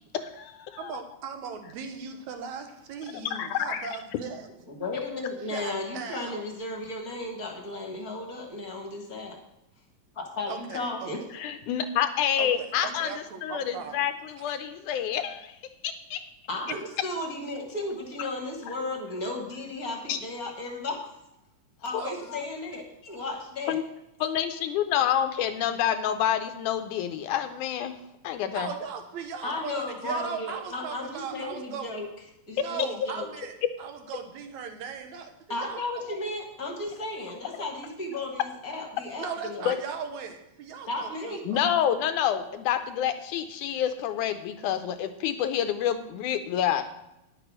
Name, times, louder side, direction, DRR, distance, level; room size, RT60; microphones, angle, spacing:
voice 1, 0.1-0.9 3.3-3.9 11.3-13.1 13.4-15.6 15.8-16.2 20.1-20.2 22.3-22.4 23.7-23.8 24.2-28.0 28.2-28.7 32.6-32.9 39.7-39.8 41.5-46.9, left 9 dB, 80° left, 9 dB, 2.0 m, -28 dB
voice 2, 0.8-4.5 5.5-6.5 10.5-11.1 12.4-14.1 14.4-14.6 16.7-16.8 22.0-22.3 28.5-32.0 32.6-33.5 33.8-35.8 39.2-41.6, right 6 dB, 65° right, 6 dB, 2.3 m, -38 dB
voice 3, 4.7-9.4 10.1-11.2 16.5-21.0 21.8-23.8 29.4-32.1 32.5-33.3 35.5-39.7 40.9-41.4, left 2 dB, 40° left, 2 dB, 1.3 m, -34 dB
10.5 x 8.0 x 6.1 m, 0.89 s
omnidirectional pair, 3.8 m